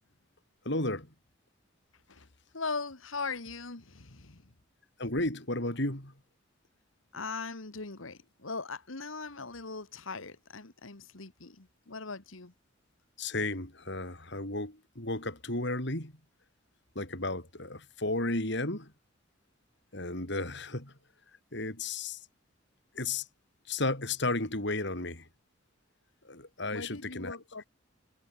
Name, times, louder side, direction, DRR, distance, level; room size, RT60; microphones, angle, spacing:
voice 1, 0.6-1.1 5.0-6.1 13.2-16.1 16.9-18.9 19.9-20.9 21.5-22.3 22.9-23.3 23.7-25.3 26.2-27.4, left 2 dB, 60° left, 6.0 m, -33 dB
voice 2, 2.5-4.5 7.1-12.5 26.7-27.6, left 4 dB, 80° left, 2.1 m, -40 dB
head